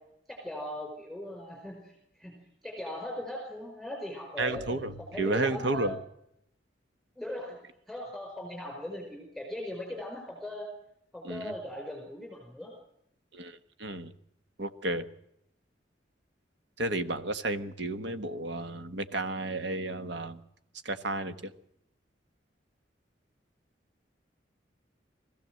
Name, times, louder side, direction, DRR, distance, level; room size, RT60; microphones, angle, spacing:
voice 1, 0.3-2.3 2.6-5.9 7.2-7.6 7.9-10.7 11.1-12.7, left 1 dB, ahead, 0 dB, 5.0 m, -39 dB
voice 2, 4.4-6.0 11.2-11.5 13.3-14.1 14.6-15.0 16.8-20.4 20.8-21.5, right 2 dB, 75° right, 10 dB, 1.2 m, -32 dB
22.0 x 15.5 x 7.7 m, 0.78 s
head